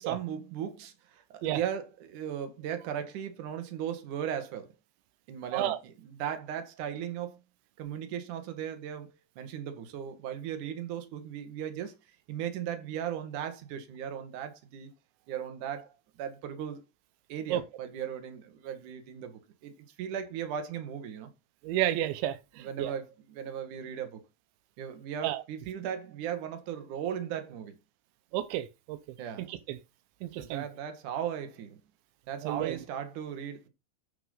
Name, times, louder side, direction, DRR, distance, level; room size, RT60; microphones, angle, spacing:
voice 1, 0.0-4.7 5.3-7.4 7.8-12.0 12.3-14.9 15.3-16.8 17.3-21.3 22.6-24.2 24.8-27.7 29.2-29.5 30.4-31.8 32.3-33.7, right 9 dB, 55° right, 2.9 m, -37 dB
voice 2, 21.6-22.9 25.2-25.4 28.3-29.0 29.5-29.8 30.2-30.6 32.4-32.8, right 13 dB, 90° right, 3.2 m, -31 dB
9.2 x 5.9 x 5.5 m
omnidirectional pair, 5.1 m